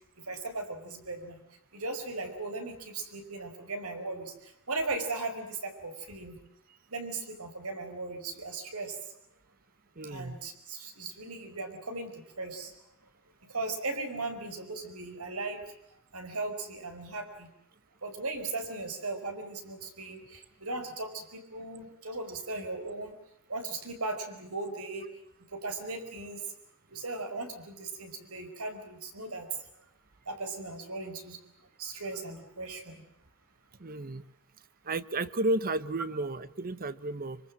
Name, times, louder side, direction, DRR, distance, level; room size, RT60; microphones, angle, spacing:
voice 1, 0.3-1.4 1.7-4.3 4.7-6.4 6.9-9.0 10.1-12.7 13.5-15.6 16.1-17.5 18.0-23.1 23.5-25.0 25.5-26.4 26.9-29.5 30.3-31.4 31.8-33.0, right 3 dB, 85° right, 6 dB, 5.1 m, -37 dB
voice 2, 10.0-10.4 33.8-34.2 34.8-37.4, right 2 dB, 40° right, 15 dB, 1.0 m, -32 dB
25.0 x 24.5 x 7.5 m, 0.82 s
head